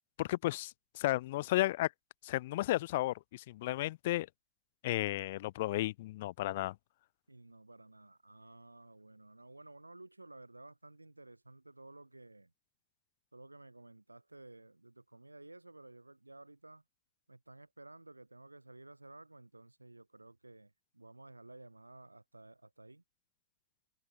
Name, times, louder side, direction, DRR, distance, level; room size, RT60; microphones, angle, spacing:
voice 1, 0.2-1.9 2.2-4.3 4.8-6.8, left 17 dB, 55° left, 0.7 m, -33 dB
voice 2, 7.3-12.5 13.3-16.8 17.3-23.0, right 2 dB, 85° right, 2.5 m, -54 dB
figure-of-eight pair, 90°, 0 cm